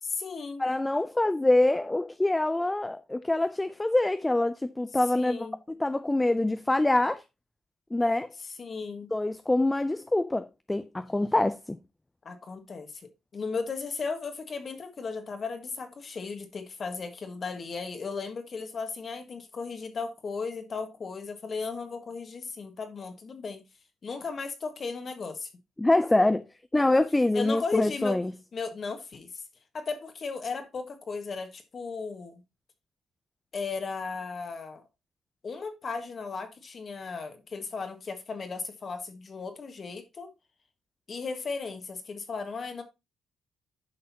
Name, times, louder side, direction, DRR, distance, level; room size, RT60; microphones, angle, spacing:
voice 1, 0.0-0.6 5.1-5.6 8.6-9.1 12.2-13.0 13.3-23.6 24.0-25.5 27.3-28.2 28.5-29.3 29.7-32.4 33.5-34.8 35.4-40.3 41.1-42.8, left 4 dB, 45° left, 1.5 m, -36 dB
voice 2, 0.6-7.2 7.9-8.3 9.1-11.8 25.8-26.4 26.7-28.3, left 2 dB, 15° left, 0.4 m, -25 dB
9.7 x 5.5 x 2.8 m
cardioid pair, 90°, 0 cm